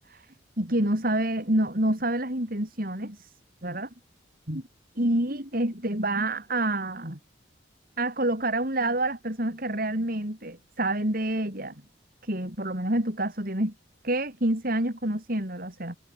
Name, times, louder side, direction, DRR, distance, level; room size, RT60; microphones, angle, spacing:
voice 1, 0.6-3.3 3.6-3.9 4.5-4.6 5.0-7.2 8.0-11.8 12.2-13.7 14.0-16.0, right 1 dB, 50° right, 5.3 m, -27 dB
head